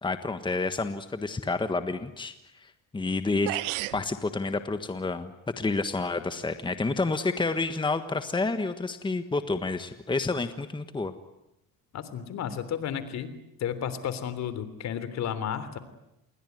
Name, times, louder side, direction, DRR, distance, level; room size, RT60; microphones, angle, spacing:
voice 1, 0.0-2.3 2.6-3.6 3.9-11.1, left 3 dB, 15° left, 9 dB, 1.5 m, -29 dB
sound 1, 3.1-3.2 3.5-4.0, right 18 dB, 85° right, 1.1 m, -31 dB
voice 2, 11.9-13.3 13.6-15.8, left 9 dB, 55° left, 13 dB, 3.3 m, -32 dB
27.5 x 22.0 x 9.4 m, 0.86 s
cardioid pair, 100°, 32 cm